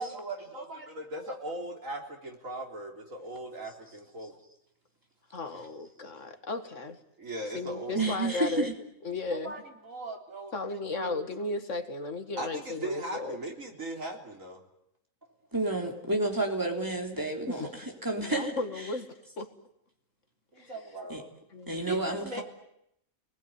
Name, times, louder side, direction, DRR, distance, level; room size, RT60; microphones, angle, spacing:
voice 1, 0.0-4.3 7.2-8.1 9.3-11.2 12.4-14.6 20.5-21.3 21.9-22.4, right 1 dB, 80° right, 1 dB, 4.0 m, -39 dB
voice 2, 5.3-7.0 7.4-8.7 9.0-9.5 10.5-13.4 17.5-17.7 18.1-19.5 20.6-20.8 21.5-21.9, left 3 dB, 65° left, 8 dB, 2.1 m, -35 dB
voice 3, 7.9-8.7 15.5-17.7 18.0-18.5 21.1-21.2 21.7-22.4, right 2 dB, 15° right, 2 dB, 3.6 m, -30 dB
28.0 x 20.0 x 9.5 m, 0.78 s
omnidirectional pair, 1.4 m